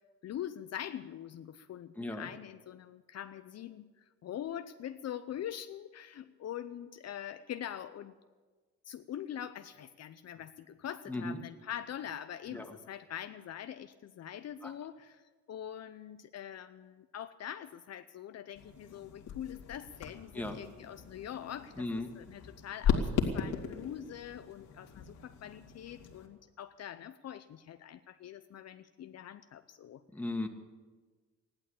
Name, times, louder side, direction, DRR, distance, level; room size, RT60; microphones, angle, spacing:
voice 1, 0.2-8.1 8.9-21.9 22.2-30.0, left 10 dB, 55° left, 10 dB, 0.7 m, -43 dB
voice 2, 2.0-2.3 11.1-11.4 12.5-12.7 14.6-14.7 20.3-20.6 21.8-22.1 30.1-30.5, left 2 dB, 5° left, 4 dB, 1.9 m, -36 dB
sound 1, 18.5-26.3, left 7 dB, 80° left, 2.5 m, -37 dB
15.0 x 11.5 x 8.5 m, 1.4 s
cardioid pair, 90°, 30 cm